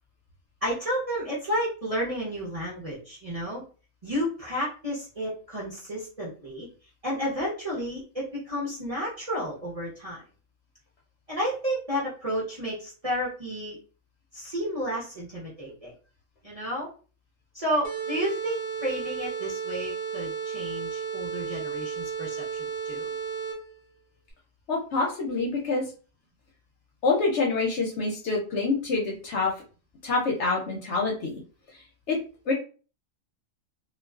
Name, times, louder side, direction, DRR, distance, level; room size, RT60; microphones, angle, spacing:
voice 1, 0.6-3.6 4.0-6.7 7.0-10.2 11.3-13.8 14.3-15.9 16.4-16.9 17.5-23.1, equal, 35° right, -7 dB, 0.7 m, -31 dB
sound 1, 17.8-23.8, right 6 dB, 75° right, 1.0 m, -33 dB
voice 2, 24.7-25.9 27.0-29.5 30.0-31.4 32.1-32.2 32.5-32.6, left 3 dB, 65° left, -2 dB, 0.8 m, -26 dB
2.3 x 2.3 x 2.2 m, 0.37 s
omnidirectional pair, 1.5 m